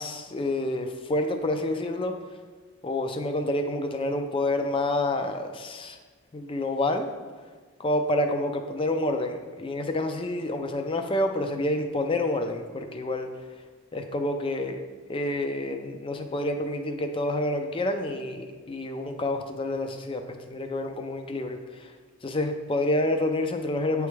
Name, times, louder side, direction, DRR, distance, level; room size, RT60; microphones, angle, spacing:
voice 1, 0.0-2.1 2.8-6.0 6.3-7.1 7.8-13.3 13.9-14.8 15.1-21.9 22.2-24.1, left 1 dB, 25° left, 6 dB, 0.3 m, -28 dB
9.0 x 3.4 x 3.2 m, 1.4 s
head